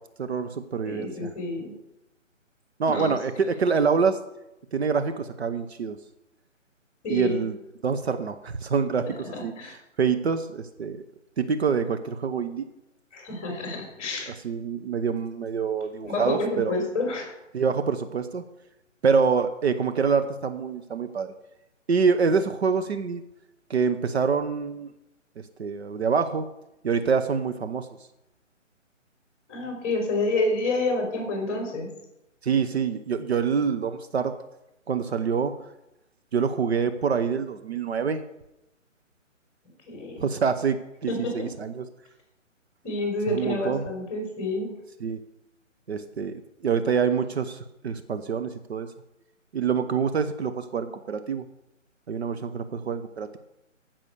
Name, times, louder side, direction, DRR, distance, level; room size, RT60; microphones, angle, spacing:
voice 1, 0.2-1.3 2.8-4.2 4.7-6.0 7.1-7.6 7.8-11.0 11.4-12.6 14.3-16.8 17.5-18.4 19.0-21.3 21.9-23.2 23.7-24.9 25.6-26.4 26.8-27.9 32.4-34.3 34.9-35.5 36.3-38.2 40.2-41.9 43.3-43.9 45.0-45.2 45.9-48.9 49.5-51.4 52.1-53.4, right 6 dB, 55° right, 9 dB, 0.9 m, -26 dB
voice 2, 0.8-1.7 2.8-3.1 7.0-7.4 9.0-9.7 13.1-14.3 16.0-17.3 29.5-31.9 39.9-40.2 41.1-41.5 42.8-44.7, left 2 dB, 20° left, 2 dB, 3.7 m, -29 dB
15.0 x 6.1 x 6.7 m, 0.89 s
hypercardioid pair, 155°, 39 cm